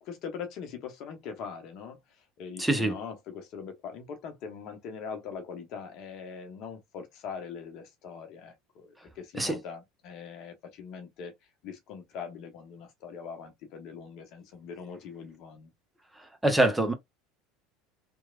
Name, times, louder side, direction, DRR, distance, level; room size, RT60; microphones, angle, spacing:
voice 1, 0.0-11.3 11.6-15.7, left 6 dB, 55° left, 0.9 m, -42 dB
voice 2, 2.6-3.0 9.3-9.6 16.4-16.9, right 1 dB, 5° right, 0.8 m, -24 dB
3.0 x 2.3 x 2.3 m
hypercardioid pair, 75°, 0 cm